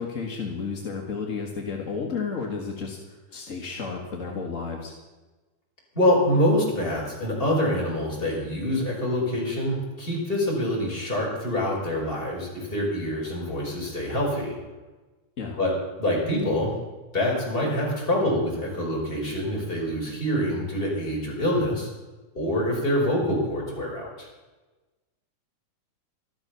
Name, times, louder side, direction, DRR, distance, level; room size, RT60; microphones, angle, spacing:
voice 1, 0.0-3.0 3.3-4.9 15.4-15.6 23.2-23.4, left 5 dB, 40° left, 0 dB, 1.1 m, -32 dB
voice 2, 5.9-14.6 15.6-15.7 16.0-16.7 17.1-21.9 22.3-24.3, left 1 dB, 15° left, -4 dB, 5.2 m, -25 dB
13.5 x 12.5 x 6.8 m, 1.2 s
omnidirectional pair, 3.7 m